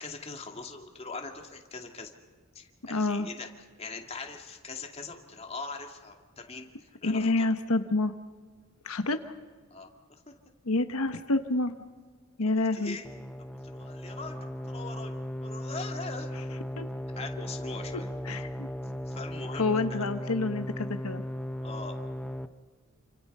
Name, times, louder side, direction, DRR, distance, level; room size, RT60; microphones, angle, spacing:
voice 1, 0.0-2.1 2.5-3.5 3.8-7.5 9.7-10.3 12.7-13.0 13.4-15.1 15.4-16.6 17.2-18.1 19.1-20.1 21.6-22.0, left 3 dB, 30° left, 3 dB, 2.4 m, -42 dB
voice 2, 2.9-3.3 7.0-8.1 8.8-9.3 10.6-11.7 12.4-13.0 16.8-16.9 17.9-18.7 19.5-21.2, left 2 dB, 90° left, 8 dB, 1.3 m, -28 dB
sound 1, 13.0-22.5, equal, 5° left, 0.7 m, -37 dB
29.0 x 26.0 x 5.5 m, 1.5 s
head